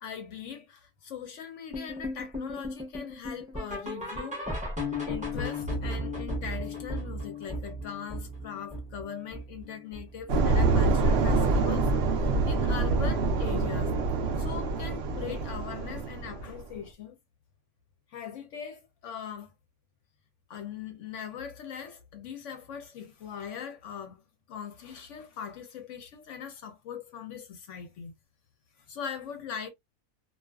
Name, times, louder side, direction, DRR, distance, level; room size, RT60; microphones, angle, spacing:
voice 1, 0.0-4.5 4.9-14.0 14.4-17.2 18.1-19.5 20.5-24.2 24.5-28.1 28.9-29.7, left 7 dB, 65° left, 0.8 m, -40 dB
sound 1, 1.7-10.8 11.1-11.4 11.7-11.8 12.4-12.5 13.0-13.1, left 1 dB, 10° right, 0.5 m, -36 dB
sound 2, 10.3-16.6, right 3 dB, 65° right, 0.6 m, -26 dB
2.4 x 2.4 x 2.2 m
omnidirectional pair, 1.6 m